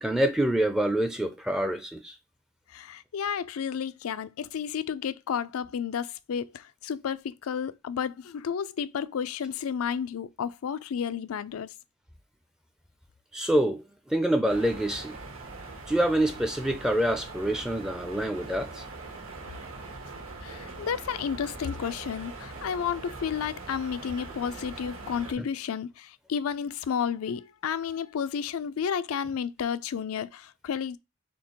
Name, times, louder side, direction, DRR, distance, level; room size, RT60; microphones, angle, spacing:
voice 1, 0.0-2.2 13.3-15.2 15.9-18.8, right 1 dB, 5° right, 0.4 m, -26 dB
voice 2, 2.7-11.7 20.4-31.0, left 7 dB, 85° left, 0.4 m, -32 dB
sound 1, 14.5-25.3, right 3 dB, 80° right, 1.6 m, -42 dB
4.4 x 3.5 x 3.0 m
head